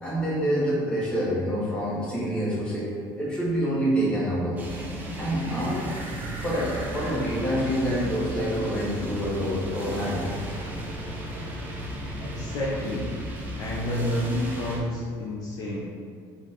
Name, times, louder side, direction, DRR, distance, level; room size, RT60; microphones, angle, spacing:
voice 1, 0.0-4.6 5.2-5.8 6.4-10.2, equal, 10° left, -7 dB, 1.2 m, -27 dB
sound 1, 4.6-14.8, equal, 20° right, 0.6 m, -35 dB
sound 2, 5.0-10.2 10.6-10.7 11.0-12.7, right 1 dB, 45° right, 1.0 m, -45 dB
voice 2, 12.2-13.1 13.5-15.9, left 1 dB, 45° left, -5 dB, 0.6 m, -29 dB
5.1 x 2.6 x 3.5 m, 2.1 s
cardioid pair, 160°, 9 cm